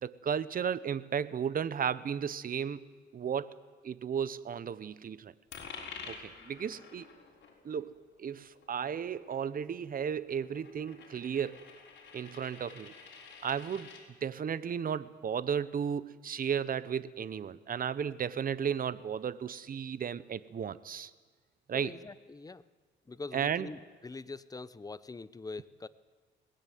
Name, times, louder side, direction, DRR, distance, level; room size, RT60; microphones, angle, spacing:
voice 1, 0.0-2.9 3.1-3.5 3.8-5.3 6.0-7.1 7.6-11.6 12.1-12.9 13.4-13.9 14.2-21.1 21.7-21.9 23.3-23.7, right 7 dB, 45° right, 16 dB, 1.0 m, -34 dB
Coin (dropping), 5.5-14.0, left 5 dB, 65° left, 6.2 m, -50 dB
voice 2, 21.7-22.6 23.1-25.9, left 3 dB, 20° left, 16 dB, 0.9 m, -43 dB
22.0 x 19.5 x 9.5 m, 1.5 s
cardioid pair, 90°, 20 cm